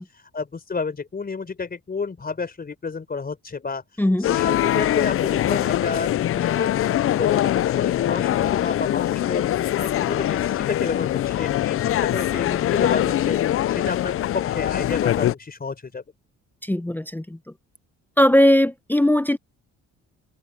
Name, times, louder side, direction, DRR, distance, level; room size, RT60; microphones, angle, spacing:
voice 1, 0.0-6.7 7.1-16.0, left 4 dB, 30° left, 4.2 m, -31 dB
sound 1, 4.2-15.3, left 12 dB, 45° left, 0.4 m, -23 dB
voice 2, 16.6-17.4 18.2-19.4, left 1 dB, 5° left, 0.7 m, -18 dB
cardioid pair, 90°, 30 cm